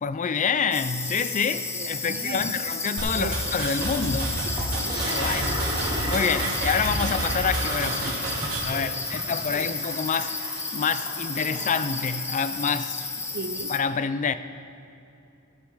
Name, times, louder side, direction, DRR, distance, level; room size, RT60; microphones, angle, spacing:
voice 1, 0.0-4.3 5.1-5.6 6.1-10.3 10.7-13.0 13.7-14.3, left 6 dB, 35° left, 12 dB, 0.4 m, -27 dB
sound 1, 0.7-13.8, left 3 dB, 10° left, 0.7 m, -32 dB
voice 2, 1.7-2.7 3.1-3.5 4.4-5.0 7.0-7.1 8.7-9.8 13.3-13.8, right 3 dB, 45° right, 10 dB, 0.6 m, -38 dB
sound 2, 3.0-8.6, right 1 dB, 85° right, 2.4 m, -30 dB
Toilet flush, 4.5-13.1, right 1 dB, 20° right, 1.9 m, -35 dB
15.5 x 8.4 x 4.8 m, 2.8 s
head